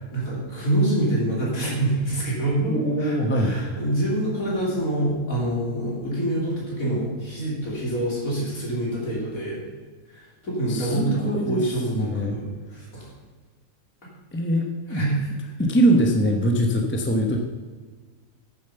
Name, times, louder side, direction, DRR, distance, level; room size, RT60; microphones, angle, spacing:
voice 1, 0.1-9.6 10.1-13.1 14.9-15.2, right 1 dB, 75° left, -5 dB, 4.1 m, -26 dB
voice 2, 2.6-3.8 10.7-12.3 14.3-15.0 15.6-17.4, right 1 dB, 10° left, 2 dB, 1.0 m, -23 dB
9.6 x 7.4 x 6.9 m, 1.4 s
omnidirectional pair, 1.5 m